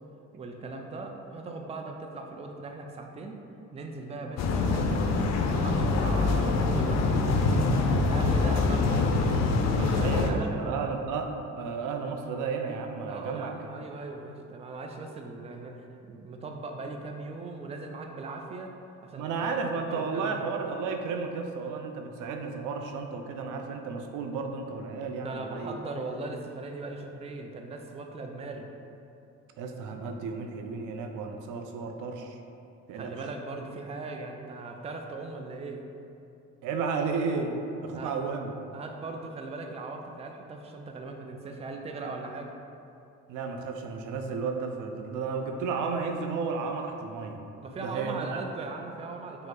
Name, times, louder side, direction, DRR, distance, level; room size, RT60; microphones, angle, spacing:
voice 1, 0.3-3.4 3.7-5.1 5.4-7.1 8.1-9.3 9.7-10.5 13.1-18.7 19.0-19.6 19.9-20.5 25.2-28.7 32.9-35.8 37.9-38.2 38.7-42.5 47.6-49.5, right 3 dB, 20° right, 3 dB, 0.4 m, -39 dB
sound 1, 4.4-10.3, left 3 dB, 60° left, 0.4 m, -24 dB
voice 2, 10.0-13.7 19.1-25.8 29.6-32.4 32.9-33.1 36.6-38.5 43.3-47.4 47.8-48.4, right 4 dB, 90° right, 4 dB, 0.5 m, -33 dB
5.2 x 2.0 x 3.7 m, 2.7 s
cardioid pair, 90°, 30 cm